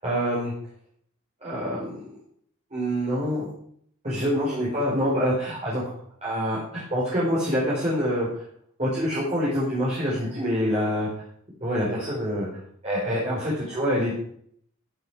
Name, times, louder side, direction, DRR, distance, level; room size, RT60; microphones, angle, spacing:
voice 1, 0.0-0.5 1.4-2.2 2.7-3.4 4.0-5.9 6.2-8.3 8.8-11.1 11.6-12.5 12.8-14.1, equal, 30° right, -8 dB, 4.8 m, -26 dB
15.0 x 9.3 x 4.9 m, 0.64 s
head